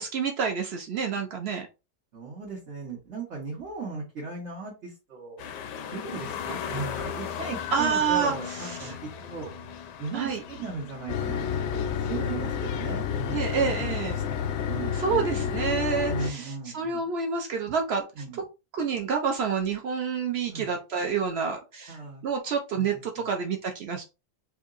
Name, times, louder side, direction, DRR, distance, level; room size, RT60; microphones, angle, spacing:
voice 1, 0.0-1.7 7.7-9.0 10.1-10.4 13.3-14.1 14.9-18.2 18.7-24.1, right 6 dB, 85° right, 3 dB, 0.5 m, -28 dB
voice 2, 2.1-5.5 5.9-9.5 10.0-14.4 14.6-15.5 16.1-17.1 18.2-18.4 20.5-20.7 21.9-22.2 22.7-23.3, right 4 dB, 45° right, -5 dB, 1.5 m, -38 dB
sound 1, 5.4-14.2 14.6-14.7, left 8 dB, 90° left, 1.3 m, -38 dB
sound 2, 11.1-16.3, left 7 dB, 70° left, 0.6 m, -29 dB
4.6 x 2.7 x 2.4 m, 0.28 s
omnidirectional pair, 1.8 m